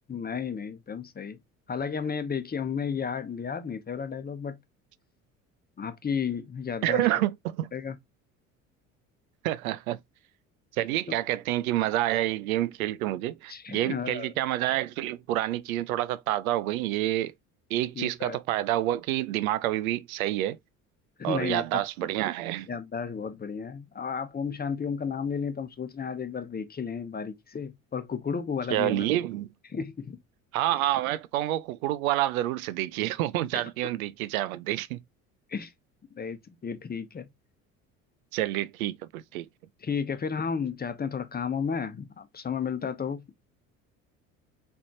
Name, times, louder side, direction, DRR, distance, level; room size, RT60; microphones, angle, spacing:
voice 1, 0.1-1.4 1.7-4.6 5.8-7.1 7.7-8.0 13.5-14.3 18.0-18.4 21.2-21.8 22.7-29.1 29.7-30.2 35.5-35.7 36.1-37.3 39.8-43.3, left 6 dB, 20° left, 0.9 m, -33 dB
voice 2, 6.8-7.7 9.4-10.0 10.8-17.3 17.7-20.6 21.2-22.7 28.7-29.5 30.5-35.0 38.3-39.5, right 14 dB, 80° right, 0.6 m, -28 dB
4.2 x 3.5 x 2.8 m
hypercardioid pair, 65°, 42 cm